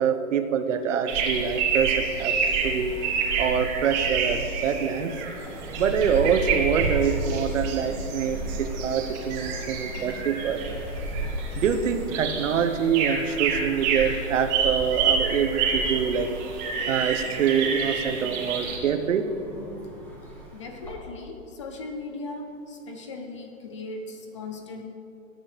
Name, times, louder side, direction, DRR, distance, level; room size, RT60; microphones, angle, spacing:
voice 1, 0.0-2.3 2.6-2.9 3.4-5.1 5.8-10.6 11.5-16.3 16.9-19.2, right 7 dB, 65° right, 8 dB, 1.0 m, -25 dB
sound 1, 1.1-18.8, right 5 dB, 30° right, 1.9 m, -29 dB
sound 2, 5.4-20.9, right 1 dB, 5° left, 1.7 m, -36 dB
voice 2, 20.5-24.8, left 3 dB, 25° left, 4 dB, 0.5 m, -38 dB
18.0 x 8.5 x 3.3 m, 2.8 s
hypercardioid pair, 150°, 41 cm